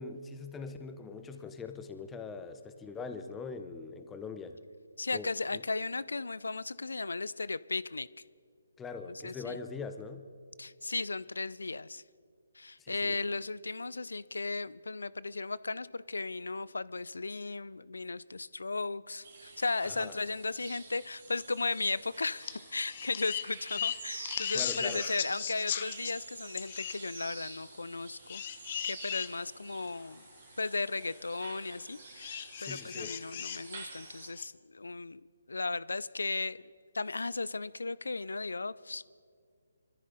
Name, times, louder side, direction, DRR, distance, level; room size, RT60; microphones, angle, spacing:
voice 1, 0.0-4.6 5.1-5.6 8.8-10.3 12.8-13.2 19.8-20.2 24.5-25.1 32.6-33.2, left 4 dB, 10° left, 8 dB, 0.8 m, -42 dB
voice 2, 5.0-8.1 9.1-9.6 10.6-12.0 12.6-28.4 28.9-30.2 30.6-35.2 35.5-36.6 36.9-39.0, left 3 dB, 80° left, 19 dB, 0.4 m, -36 dB
sound 1, 19.2-34.3, right 4 dB, 50° right, 2.8 m, -49 dB
sound 2, 22.4-22.6 22.8-26.1 26.6-27.0 28.3-29.3 30.0-30.1 32.2-33.6 34.3-34.4, left 9 dB, 40° left, 0.6 m, -37 dB
24.5 x 13.5 x 4.0 m, 2.1 s
figure-of-eight pair, 150°, 0 cm